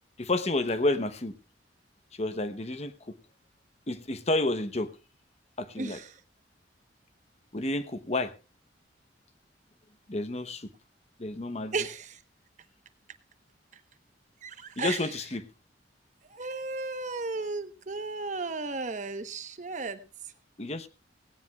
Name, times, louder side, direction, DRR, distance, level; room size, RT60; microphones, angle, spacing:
voice 1, 0.2-1.3 2.1-3.1 3.9-4.9 5.6-6.0 7.5-8.3 10.1-10.7 11.2-11.7 14.8-15.4 20.6-20.9, left 2 dB, 35° left, 10 dB, 0.9 m, -30 dB
voice 2, 5.7-6.2 11.7-12.2 14.4-15.1 16.3-20.0, right 3 dB, 40° right, 9 dB, 1.0 m, -34 dB
18.0 x 17.0 x 2.3 m, 0.30 s
head